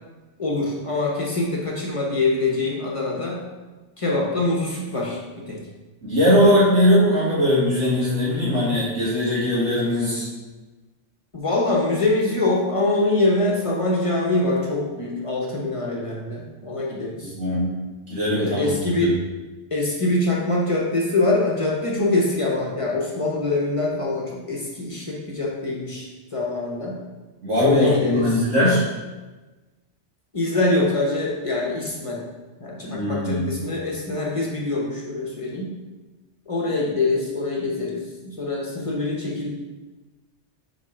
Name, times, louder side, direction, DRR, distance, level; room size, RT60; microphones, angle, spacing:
voice 1, 0.4-3.4 4.0-5.6 11.3-17.3 18.3-19.2 19.7-27.0 27.6-28.4 30.3-32.2 32.6-35.7 36.5-39.5, left 2 dB, 30° left, -3 dB, 1.0 m, -24 dB
voice 2, 6.0-10.3 17.4-17.8 18.1-19.1 27.4-28.8 32.8-33.6, left 1 dB, 80° right, -9 dB, 2.3 m, -20 dB
5.6 x 3.9 x 4.3 m, 1.2 s
omnidirectional pair, 1.2 m